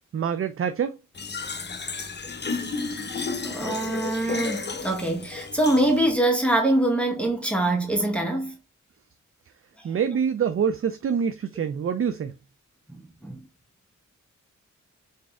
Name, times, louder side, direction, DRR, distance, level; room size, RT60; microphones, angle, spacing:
voice 1, 0.1-1.0 9.8-12.3, right 7 dB, 45° right, 0.4 m, -25 dB
Fill (with liquid), 1.2-6.2, left 4 dB, 35° left, 0.7 m, -32 dB
voice 2, 3.4-8.5 12.9-13.4, right 1 dB, 5° left, 1.2 m, -24 dB
3.9 x 3.9 x 2.4 m
cardioid pair, 40°, 32 cm